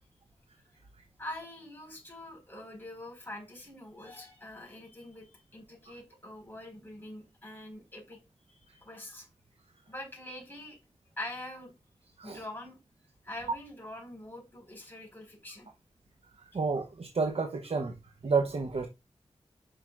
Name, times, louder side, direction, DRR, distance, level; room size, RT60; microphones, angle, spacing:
voice 1, 1.2-8.2 8.7-9.3 9.9-10.8 11.2-11.7 12.2-12.8 13.2-15.7, left 1 dB, 20° left, 4.5 m, -44 dB
voice 2, 16.5-17.9 18.2-18.9, right 4 dB, 65° right, 0.8 m, -30 dB
7.8 x 5.5 x 2.4 m
cardioid pair, 50°, 11 cm